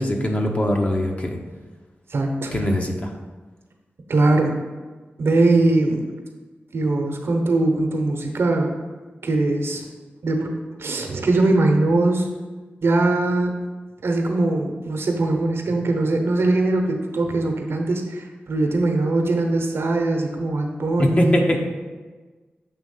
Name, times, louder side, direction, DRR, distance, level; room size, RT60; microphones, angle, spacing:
voice 1, 0.0-1.4 2.5-3.1 21.0-21.6, left 1 dB, 35° left, 2 dB, 0.9 m, -21 dB
voice 2, 2.1-2.6 4.1-4.6 5.2-6.1 6.7-8.7 9.2-9.8 10.2-10.5 10.8-12.3 12.8-13.5 14.0-21.6, right 2 dB, 70° right, 3 dB, 0.9 m, -21 dB
7.0 x 3.1 x 5.5 m, 1.3 s
cardioid pair, 60°, 4 cm